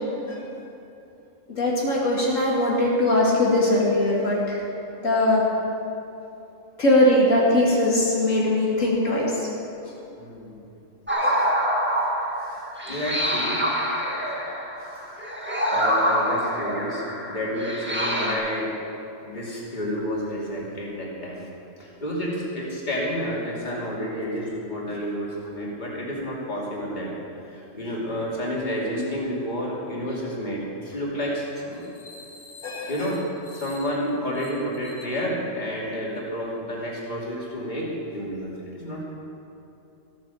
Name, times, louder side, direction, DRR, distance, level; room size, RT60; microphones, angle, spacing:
voice 1, 1.5-4.6 5.0-5.4 6.8-9.2 11.2-11.5 32.1-32.3 32.6-32.9, left 1 dB, 80° left, -5 dB, 2.5 m, -21 dB
voice 2, 10.2-10.7 12.8-13.6 15.7-17.0 17.3-18.7 19.2-21.4 21.8-27.1 27.5-31.8 32.9-33.2 33.5-39.0, equal, 35° left, -5 dB, 2.9 m, -30 dB
sound 1, 11.1-18.4, equal, 10° right, 1.5 m, -26 dB
14.5 x 9.0 x 7.0 m, 2.8 s
omnidirectional pair, 1.3 m